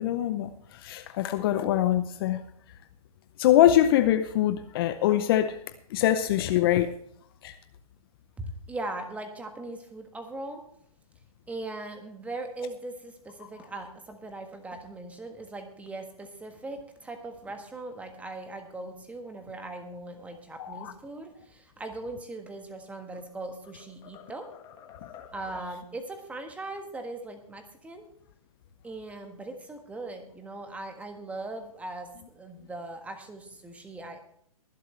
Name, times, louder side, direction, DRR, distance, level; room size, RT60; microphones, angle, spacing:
voice 1, 0.0-2.4 3.4-5.6 5.9-6.9 7.4-7.5 20.6-20.9, left 12 dB, 40° left, 11 dB, 0.7 m, -23 dB
voice 2, 8.4-10.6 11.5-24.5 25.3-28.0 28.8-34.2, right 2 dB, 5° right, 6 dB, 1.6 m, -39 dB
sound 1, 22.8-23.3 23.6-25.8, left 9 dB, 25° left, 1.7 m, -50 dB
23.0 x 7.9 x 3.3 m, 0.67 s
hypercardioid pair, 130°, 19 cm